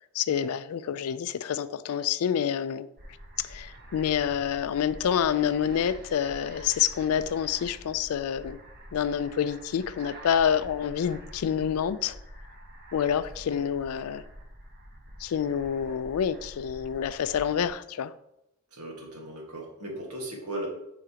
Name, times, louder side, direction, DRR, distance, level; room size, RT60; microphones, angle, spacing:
voice 1, 0.2-2.9 3.4-8.6 8.9-12.2 12.9-14.2 15.2-18.1, left 8 dB, 70° left, 0.3 m, -27 dB
sound 1, 3.0-17.7, right 1 dB, 45° right, 1.0 m, -47 dB
voice 2, 18.7-20.7, right 1 dB, 80° right, 1.7 m, -37 dB
8.0 x 4.9 x 2.9 m
head